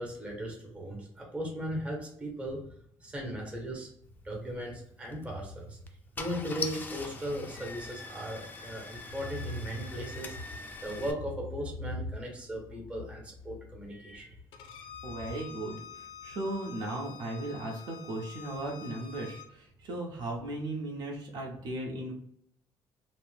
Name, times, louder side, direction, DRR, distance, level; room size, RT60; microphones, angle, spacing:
voice 1, 0.0-2.6 3.0-3.9 4.2-5.8 6.2-10.4 10.8-14.4, equal, 15° right, -1 dB, 0.8 m, -37 dB
Car / Engine starting, 5.0-5.3 5.9-6.0 6.1-11.1, left 4 dB, 20° left, 0.4 m, -42 dB
Bowed string instrument, 14.5-19.5, left 8 dB, 85° left, 0.4 m, -48 dB
voice 2, 15.0-22.1, right 1 dB, 65° right, -1 dB, 0.8 m, -37 dB
2.7 x 2.1 x 3.1 m, 0.69 s
cardioid pair, 130°, 8 cm